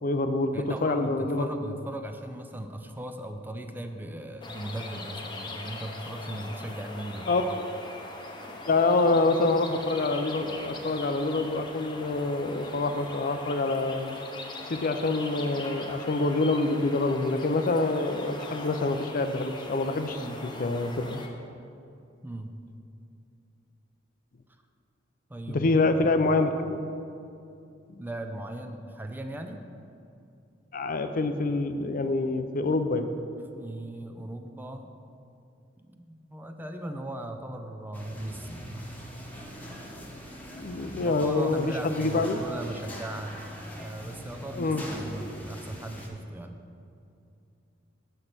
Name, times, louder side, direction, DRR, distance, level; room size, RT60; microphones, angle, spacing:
voice 1, 0.0-0.5 0.8-1.8 7.3-7.7 8.6-14.2 14.7-21.2 25.5-26.8 30.7-33.1 40.5-42.4 44.6-44.8, left 3 dB, 45° left, 9 dB, 0.5 m, -26 dB
voice 2, 0.5-7.3 20.2-20.4 22.2-22.5 25.3-25.7 26.0-26.2 28.0-29.6 33.5-34.9 35.8-39.0 41.0-43.4 43.8-46.6, right 1 dB, 10° right, 6 dB, 0.4 m, -38 dB
sound 1, 4.4-21.3, left 2 dB, 25° left, 0.8 m, -41 dB
sound 2, 37.9-46.1, equal, 10° left, 1.1 m, -42 dB
6.6 x 6.0 x 7.4 m, 2.6 s
head